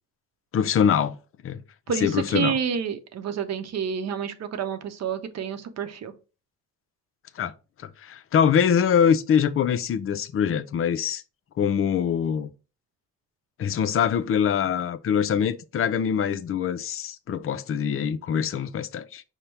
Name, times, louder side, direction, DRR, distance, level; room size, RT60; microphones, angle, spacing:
voice 1, 0.5-1.2 1.4-1.6 2.0-2.6 7.4-7.5 8.0-11.2 11.6-12.5 13.6-19.2, left 8 dB, 45° left, 0.5 m, -23 dB
voice 2, 1.9-6.1, right 7 dB, 60° right, 0.7 m, -29 dB
5.4 x 2.2 x 4.5 m
cardioid pair, 90°, 30 cm